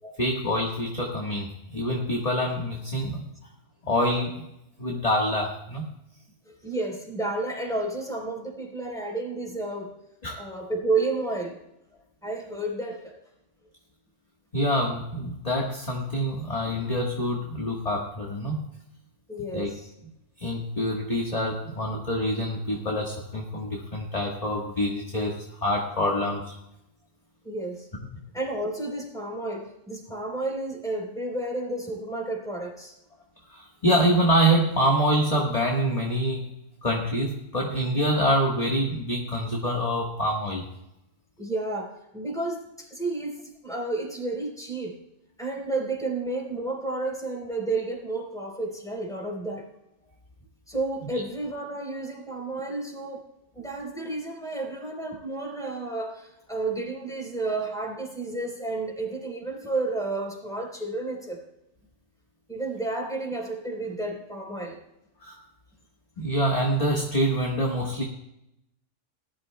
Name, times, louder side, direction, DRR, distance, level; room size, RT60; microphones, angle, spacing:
voice 1, 0.2-3.3 3.9-4.3 4.8-5.9 10.2-10.4 14.5-18.6 19.5-19.7 20.4-26.5 33.5-36.5 36.8-40.6 65.2-65.4 66.2-68.0, equal, 30° left, -1 dB, 1.4 m, -26 dB
voice 2, 6.5-9.9 10.4-11.6 12.2-13.1 19.3-19.9 27.4-27.9 28.3-32.9 41.4-45.0 45.4-49.7 50.7-53.3 53.5-61.4 62.5-64.8 66.2-66.3, right 2 dB, 5° left, -1 dB, 3.7 m, -31 dB
19.5 x 12.0 x 2.2 m, 0.84 s
omnidirectional pair, 1.3 m